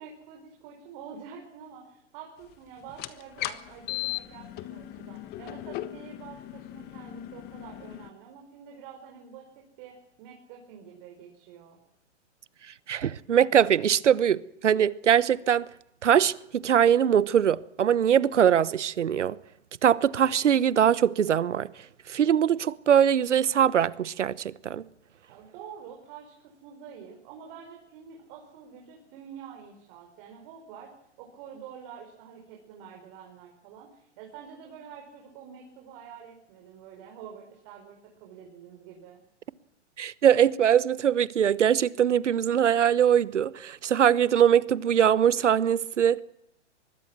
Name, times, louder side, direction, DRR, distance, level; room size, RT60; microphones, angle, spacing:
voice 1, 0.0-11.8 25.3-39.2, right 7 dB, 40° right, 4.9 m, -47 dB
sound 1, 2.9-8.1, left 15 dB, 25° left, 1.4 m, -37 dB
voice 2, 12.9-15.6 16.0-19.4 19.8-21.7 22.1-24.8 40.0-46.2, right 9 dB, 80° right, 1.1 m, -22 dB
24.5 x 21.5 x 6.1 m
hypercardioid pair, 130°, 36 cm